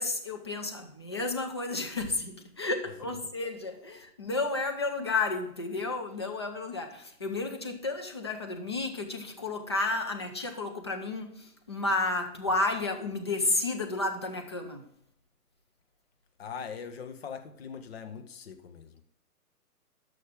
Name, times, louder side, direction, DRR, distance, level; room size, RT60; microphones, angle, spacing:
voice 1, 0.0-14.8, left 2 dB, 20° left, 0.4 m, -32 dB
voice 2, 16.4-19.0, left 6 dB, 40° left, 1.1 m, -41 dB
11.5 x 6.3 x 3.6 m
hypercardioid pair, 145°, 47 cm